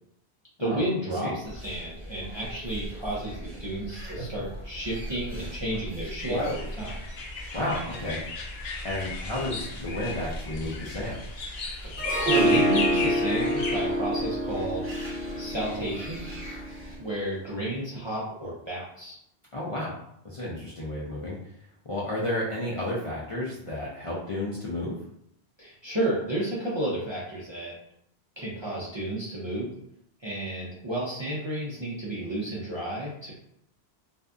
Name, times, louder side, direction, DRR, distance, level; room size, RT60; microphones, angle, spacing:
voice 1, 0.6-7.0 11.8-14.9 15.4-16.2 17.0-19.2 25.6-27.8 28.4-29.7 30.2-33.3, right 1 dB, 35° right, -6 dB, 0.4 m, -32 dB
sound 1, 1.4-17.0, equal, 10° right, 0.9 m, -39 dB
sound 2, 6.2-13.8, left 3 dB, 70° left, 0.8 m, -35 dB
voice 2, 7.5-8.2 8.8-11.2 19.5-20.0 20.2-21.4 21.8-24.9, left 1 dB, 40° left, -7 dB, 0.5 m, -32 dB
Harp, 12.0-17.0, equal, 65° right, 0.8 m, -27 dB
2.6 x 2.4 x 2.2 m, 0.73 s
omnidirectional pair, 1.1 m